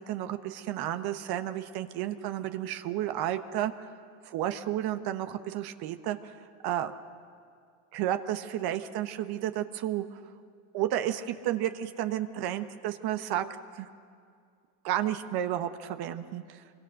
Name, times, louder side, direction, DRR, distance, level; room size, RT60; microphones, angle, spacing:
voice 1, 0.1-3.7 4.2-6.3 6.6-6.9 7.9-10.2 10.7-13.5 13.7-13.9 14.8-16.6, right 12 dB, 50° right, 9 dB, 1.3 m, -32 dB
26.5 x 23.5 x 6.6 m, 2.2 s
hypercardioid pair, 90°, 47 cm